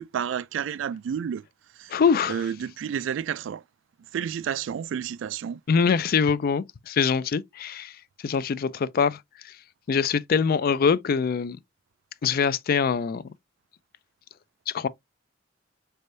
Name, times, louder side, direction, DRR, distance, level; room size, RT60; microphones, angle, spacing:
voice 1, 0.0-1.4 1.8-2.0 2.3-3.6 4.1-5.6, right 8 dB, 65° right, 0.3 m, -30 dB
voice 2, 1.9-2.4 5.7-7.9 8.2-9.2 9.9-11.6 12.2-13.2 14.7-14.9, left 6 dB, 50° left, 0.4 m, -23 dB
4.3 x 3.4 x 2.6 m
head